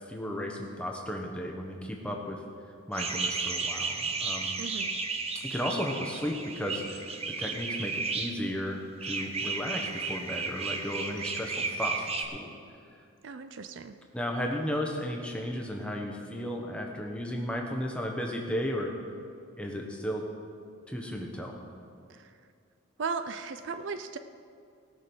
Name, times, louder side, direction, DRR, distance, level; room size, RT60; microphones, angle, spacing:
voice 1, 0.1-2.4 2.9-4.5 5.4-7.1 7.4-12.5 14.1-18.9 19.6-20.3 20.9-21.6, equal, 5° left, 0 dB, 1.2 m, -34 dB
sound 1, 2.9-8.3 9.0-12.2, right 4 dB, 30° right, 0.8 m, -33 dB
voice 2, 4.6-4.9 13.2-14.0 22.1-22.3 23.0-24.2, right 5 dB, 60° right, 10 dB, 0.5 m, -36 dB
18.0 x 6.3 x 6.2 m, 2.3 s
head